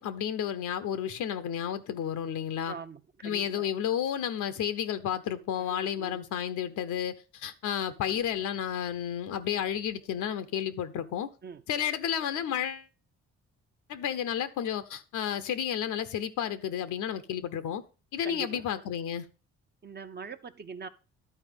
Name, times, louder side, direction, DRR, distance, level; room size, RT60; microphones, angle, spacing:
voice 1, 0.0-2.7 3.2-11.3 11.7-12.9 13.9-17.8 18.1-19.3, left 9 dB, 80° left, 0.8 m, -32 dB
voice 2, 2.7-3.7 5.6-6.2 11.4-11.6 18.2-18.6 19.8-20.9, right 5 dB, 35° right, 0.7 m, -42 dB
11.0 x 4.3 x 5.2 m
cardioid pair, 90°, 30 cm